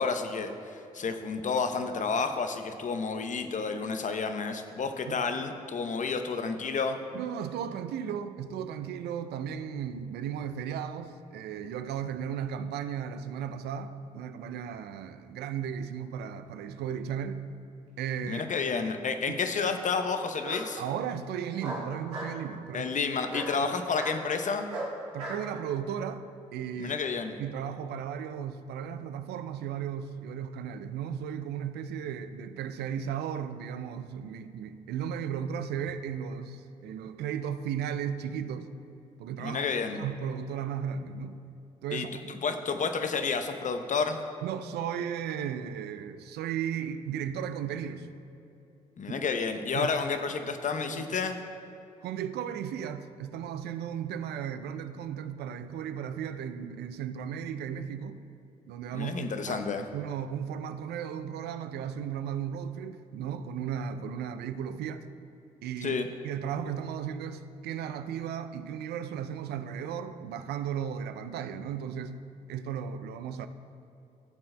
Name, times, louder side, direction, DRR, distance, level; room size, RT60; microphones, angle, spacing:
voice 1, 0.0-7.0 18.2-20.8 22.7-24.7 26.8-27.4 39.4-40.0 41.9-42.1 42.4-44.2 49.0-51.4 58.9-59.8 65.8-66.1, left 5 dB, 45° left, 7 dB, 0.7 m, -30 dB
voice 2, 7.1-17.4 18.0-18.4 19.3-19.4 20.8-22.9 23.5-23.7 25.1-26.9 27.4-38.7 39.2-39.6 39.9-41.4 41.8-42.1 44.4-48.1 49.7-49.9 50.9-51.0 52.0-58.2 58.6-59.7 59.9-65.1 65.6-66.0 66.2-72.2 72.5-73.5, right 8 dB, 70° right, 11 dB, 0.4 m, -35 dB
Bark, 18.3-18.9 20.4-20.6 21.6-22.3 23.3-23.5 23.9-24.2 24.7-25.4, right 1 dB, 90° right, 1.2 m, -37 dB
14.0 x 7.6 x 2.2 m, 2.7 s
hypercardioid pair, 45°, 18 cm